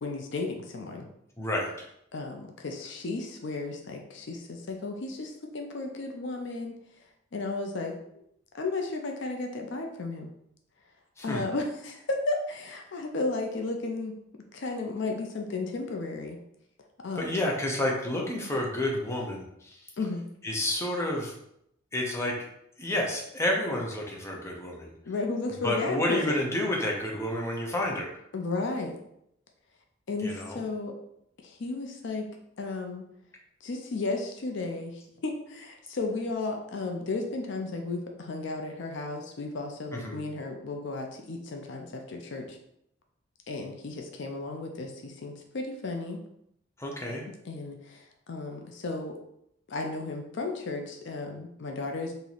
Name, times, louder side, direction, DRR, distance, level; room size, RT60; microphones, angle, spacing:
voice 1, 0.0-1.1 2.1-6.7 7.3-8.2 8.5-10.3 11.2-14.2 14.5-16.4 17.0-17.4 20.0-20.2 25.1-26.4 28.3-29.0 30.1-30.9 31.4-32.3 32.6-33.0 33.6-42.6 43.5-46.2 47.5-49.1 49.7-52.1, left 3 dB, 60° left, 3 dB, 0.5 m, -34 dB
voice 2, 1.4-1.9 11.2-11.4 17.2-19.8 20.4-21.3 21.9-22.3 22.8-24.9 25.5-28.1 30.2-30.6 39.9-40.2 46.8-47.2, left 1 dB, 15° left, -1 dB, 0.6 m, -30 dB
3.0 x 2.6 x 3.9 m, 0.76 s
head